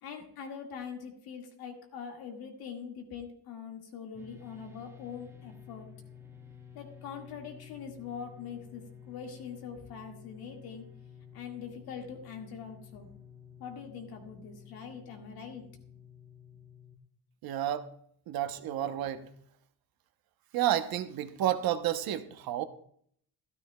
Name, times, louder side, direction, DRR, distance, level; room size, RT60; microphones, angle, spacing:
voice 1, 0.0-5.9 6.7-10.8 11.3-13.1 13.6-15.6, left 7 dB, 75° left, 3 dB, 1.9 m, -43 dB
sound 1, 4.1-17.0, left 8 dB, 5° right, 0.9 m, -52 dB
voice 2, 17.4-17.9 18.3-19.2 20.5-22.6, right 11 dB, 70° right, 9 dB, 0.9 m, -30 dB
13.0 x 12.5 x 2.2 m, 0.65 s
cardioid pair, 125°, 37 cm